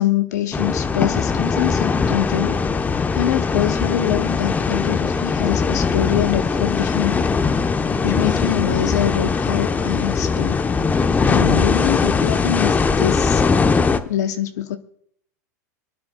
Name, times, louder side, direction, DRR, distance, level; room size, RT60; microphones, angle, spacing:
voice 1, 0.0-2.6 3.0-7.3 8.0-10.6 11.2-13.4 14.0-14.8, left 11 dB, 70° left, 7 dB, 0.8 m, -24 dB
sound 1, 0.5-14.0, left 4 dB, 15° left, 0.9 m, -20 dB
28.0 x 9.7 x 2.3 m, 0.66 s
hypercardioid pair, 105°, 9 cm